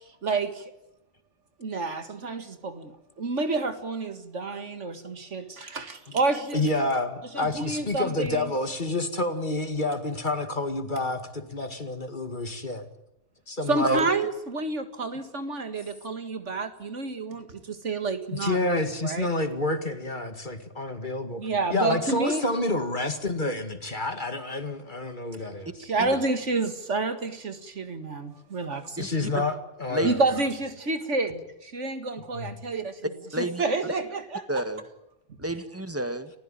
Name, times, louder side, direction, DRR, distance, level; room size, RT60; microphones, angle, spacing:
voice 1, 0.2-0.6 1.6-2.9 3.2-6.6 7.3-8.5 13.7-19.3 21.4-22.4 25.8-29.0 30.0-33.0 33.4-34.5, right 3 dB, 75° right, 9 dB, 2.2 m, -29 dB
voice 2, 6.5-12.8 13.5-14.0 18.3-21.4 21.7-25.7 26.0-26.1 29.0-30.2 32.3-32.5, left 2 dB, 40° left, 8 dB, 2.2 m, -29 dB
voice 3, 34.5-34.8 35.4-36.3, right 1 dB, 10° right, 9 dB, 1.7 m, -29 dB
29.0 x 15.5 x 9.0 m, 0.91 s
omnidirectional pair, 1.2 m